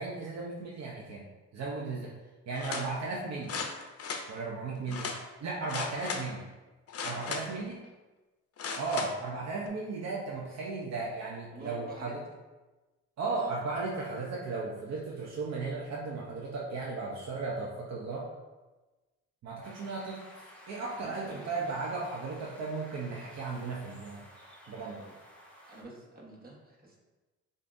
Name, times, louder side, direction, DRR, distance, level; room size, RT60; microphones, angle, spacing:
voice 1, 0.0-2.1 2.5-3.6 4.3-5.1 5.4-6.4 7.0-7.8 8.7-12.2 13.2-18.3 19.4-20.2 20.7-24.2 24.7-25.0, right 3 dB, 60° right, -4 dB, 0.8 m, -35 dB
sound 1, 2.5-2.9 3.5-4.3 4.9-5.2 5.7-6.3 6.9-7.6 8.6-9.1 9.7-9.8, left 5 dB, 50° left, 0.7 m, -36 dB
voice 2, 7.1-7.5 11.5-12.1 20.9-21.7 24.8-25.1 25.7-27.0, right 2 dB, 30° right, -2 dB, 1.3 m, -49 dB
sound 2, 19.6-25.8, equal, 5° left, 1.5 m, -53 dB
7.0 x 2.7 x 2.6 m, 1.2 s
cardioid pair, 90°, 30 cm